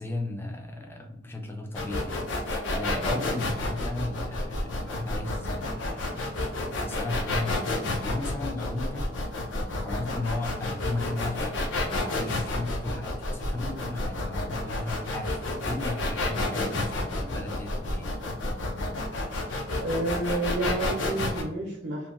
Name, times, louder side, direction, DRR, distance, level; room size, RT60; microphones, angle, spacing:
voice 1, 0.0-6.3 6.8-7.6 8.0-9.1 9.8-11.6 12.0-18.1, left 2 dB, 10° left, 2 dB, 0.3 m, -35 dB
sound 1, 1.7-21.4, left 2 dB, 80° left, 0.5 m, -30 dB
voice 2, 19.8-22.1, right 2 dB, 75° right, -3 dB, 0.5 m, -30 dB
2.8 x 2.1 x 2.4 m, 0.83 s
head